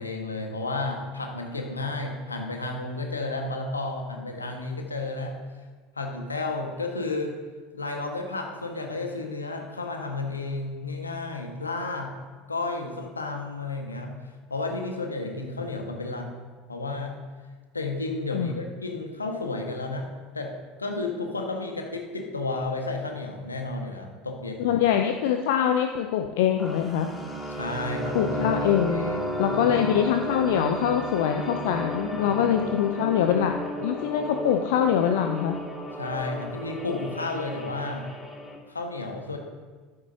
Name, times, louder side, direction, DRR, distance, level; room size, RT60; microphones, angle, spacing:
voice 1, 0.0-5.4 5.9-7.4 7.7-12.1 12.5-14.1 14.5-16.3 16.7-17.1 17.7-20.1 20.3-20.5 20.8-24.8 27.5-28.3 28.8-29.6 29.9-30.0 32.1-32.4 36.0-38.0 38.7-39.4, left 3 dB, 85° left, 2 dB, 1.6 m, -32 dB
voice 2, 24.6-27.1 28.1-29.1 29.4-33.5 33.8-35.6, left 9 dB, 65° left, 5 dB, 0.6 m, -24 dB
sound 1, 26.6-38.6, equal, 10° left, 2.4 m, -33 dB
13.5 x 11.0 x 2.8 m, 1.4 s
figure-of-eight pair, 70°, 0 cm